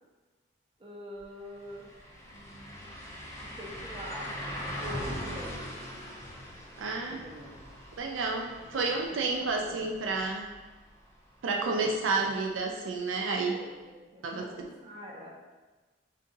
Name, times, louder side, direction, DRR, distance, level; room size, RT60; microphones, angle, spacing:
voice 1, 0.8-1.9 2.3-3.0 3.4-4.3 4.6-5.7 6.8-7.6 8.7-9.9 11.6-12.3 13.5-15.5, equal, 25° right, -4 dB, 0.8 m, -45 dB
sound 1, 1.2-1.3 1.6-11.4 11.7-11.8 14.6-14.7, equal, 15° left, 0.5 m, -41 dB
voice 2, 6.8-7.2 8.0-10.5 11.4-13.5 14.2-14.4, right 3 dB, 85° right, 2 dB, 0.4 m, -30 dB
6.4 x 2.6 x 2.6 m, 1.2 s
head